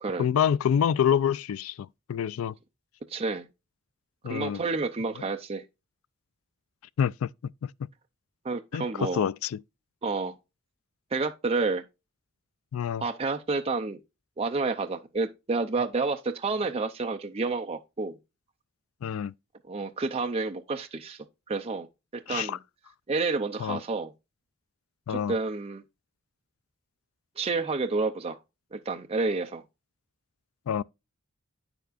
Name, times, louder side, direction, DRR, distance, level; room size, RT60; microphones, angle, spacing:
voice 1, 0.2-2.5 4.2-4.6 7.0-7.3 8.7-9.6 12.7-13.0 19.0-19.3 22.3-22.6 23.6-23.8 25.1-25.3 30.7-30.8, left 8 dB, 75° left, 0.3 m, -27 dB
voice 2, 3.1-3.5 4.3-5.6 8.4-9.2 10.0-10.3 11.1-11.8 13.0-14.0 14.4-18.2 19.7-21.9 22.1-22.6 23.1-24.1 25.1-25.8 27.4-28.4 28.7-29.6, right 3 dB, 30° right, 0.6 m, -29 dB
9.1 x 6.9 x 2.5 m
head